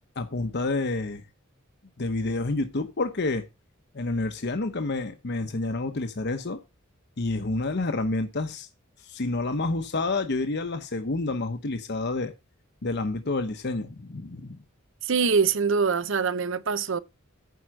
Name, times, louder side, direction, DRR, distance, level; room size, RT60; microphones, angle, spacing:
voice 1, 0.2-1.2 2.0-3.4 3.9-6.6 7.2-8.7 9.0-12.3 12.8-14.6, left 2 dB, 55° left, 0.9 m, -29 dB
voice 2, 15.0-17.0, right 5 dB, 65° right, 0.7 m, -24 dB
9.4 x 4.7 x 7.5 m
head